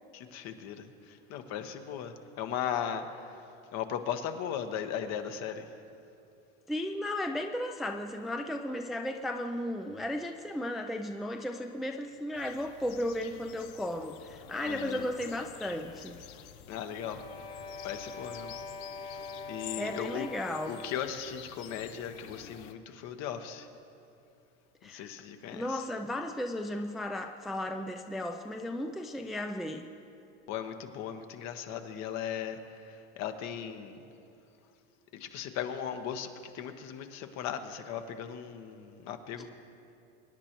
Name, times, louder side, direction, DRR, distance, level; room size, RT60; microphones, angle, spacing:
voice 1, 0.1-3.3 3.7-5.6 14.6-15.0 16.7-17.2 17.8-18.5 19.0-19.2 19.5-20.3 20.7-23.7 24.8-25.8 30.5-34.0 35.1-39.5, left 8 dB, 55° left, 7 dB, 1.1 m, -37 dB
voice 2, 6.7-16.2 19.8-20.7 24.8-25.1 25.5-29.8, left 1 dB, ahead, 4 dB, 0.4 m, -35 dB
sound 1, 12.3-22.7, left 11 dB, 75° left, 0.8 m, -49 dB
sound 2, 17.1-21.2, left 4 dB, 15° left, 0.9 m, -43 dB
24.0 x 10.0 x 3.0 m, 2.7 s
supercardioid pair, 125°, 32 cm